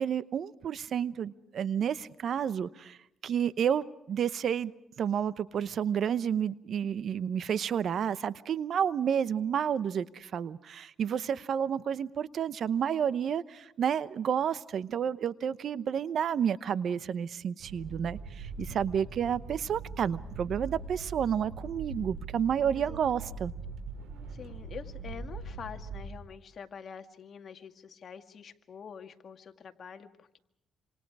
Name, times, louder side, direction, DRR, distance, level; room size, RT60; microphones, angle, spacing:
voice 1, 0.0-3.0 3.2-4.7 5.0-23.5, right 8 dB, 60° right, 0.9 m, -30 dB
sound 1, 17.6-26.1, right 3 dB, 85° right, 6.1 m, -41 dB
voice 2, 22.8-23.4 24.3-30.4, left 7 dB, 55° left, 2.1 m, -46 dB
27.0 x 27.0 x 4.9 m
cardioid pair, 90°, 0 cm